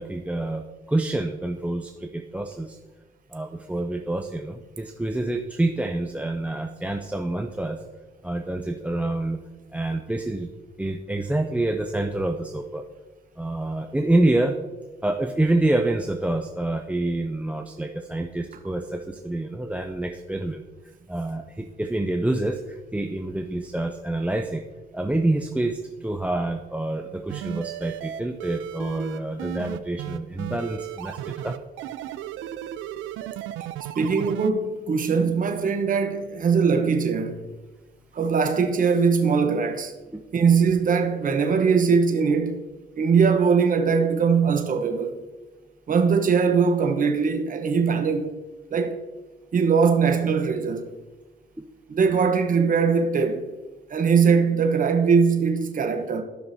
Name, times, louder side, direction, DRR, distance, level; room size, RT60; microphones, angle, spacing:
voice 1, 0.0-2.8 3.3-7.8 8.2-9.4 9.7-10.5 10.8-12.8 13.4-14.6 15.0-20.6 21.1-24.6 24.9-31.6 40.1-40.2 51.6-51.7, right 2 dB, 5° right, 0.5 m, -27 dB
sound 1, 27.3-34.5, right 11 dB, 90° right, 0.4 m, -35 dB
voice 2, 34.0-37.5 38.1-39.9 40.3-42.6 43.0-45.2 45.9-48.3 48.7-49.0 49.5-50.9 51.9-53.4 53.9-56.2, right 5 dB, 45° right, 1.0 m, -21 dB
13.0 x 5.9 x 2.7 m
cardioid pair, 90°, 20 cm